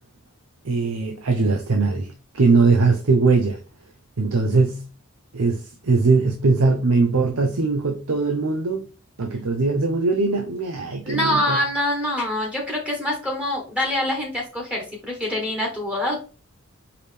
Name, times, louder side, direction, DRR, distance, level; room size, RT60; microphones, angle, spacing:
voice 1, 0.6-3.6 4.2-4.8 5.3-8.9 9.2-11.6, right 4 dB, 80° right, 0.7 m, -20 dB
voice 2, 11.0-16.2, left 1 dB, 5° right, 1.2 m, -25 dB
4.7 x 3.3 x 3.4 m
head